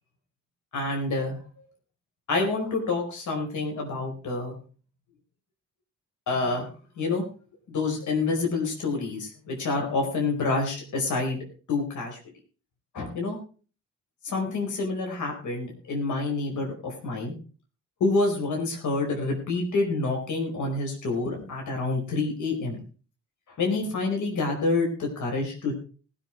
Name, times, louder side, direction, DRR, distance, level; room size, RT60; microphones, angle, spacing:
voice 1, 0.7-1.6 2.3-4.5 6.3-6.7 7.0-7.2 7.7-11.4 11.7-12.2 12.9-13.4 14.2-17.3 18.0-22.8 23.6-25.8, left 3 dB, 70° left, 1 dB, 4.8 m, -27 dB
20.0 x 7.7 x 4.6 m, 0.39 s
cardioid pair, 100°, 31 cm